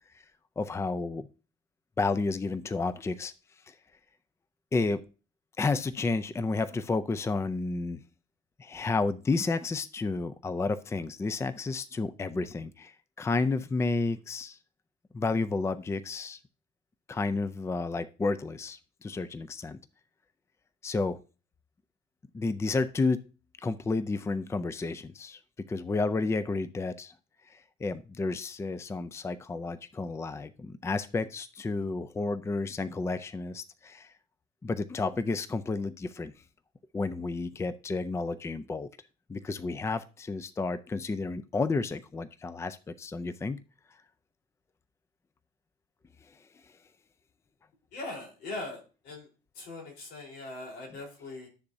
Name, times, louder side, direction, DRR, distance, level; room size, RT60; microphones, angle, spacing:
voice 1, 0.6-1.3 2.0-3.3 3.7-3.8 4.7-5.0 5.6-8.0 8.6-14.6 15.1-16.4 17.1-19.8 20.8-21.2 22.3-23.2 23.6-25.4 25.7-27.1 27.4-34.1 34.6-36.3 36.9-38.9 39.3-43.6, left 3 dB, 15° left, 14 dB, 0.4 m, -31 dB
voice 2, 47.9-49.3 49.6-51.5, left 2 dB, 85° left, 0 dB, 3.9 m, -40 dB
11.5 x 6.7 x 2.7 m, 0.35 s
cardioid pair, 110°, 17 cm